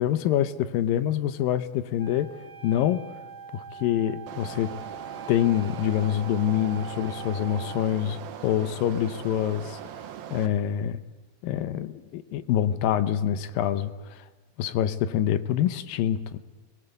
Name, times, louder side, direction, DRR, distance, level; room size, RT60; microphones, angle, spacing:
voice 1, 0.0-2.3 2.6-3.0 3.5-4.7 5.3-9.8 10.3-11.0 11.4-14.2 14.6-16.4, left 10 dB, 75° left, 12 dB, 2.5 m, -26 dB
Wind instrument woodwind instrument, 2.0-7.9, right 6 dB, 35° right, 2.1 m, -42 dB
sound 1, 4.3-10.5, right 9 dB, 85° right, 3.0 m, -40 dB
23.0 x 21.5 x 8.1 m, 1.3 s
omnidirectional pair, 4.2 m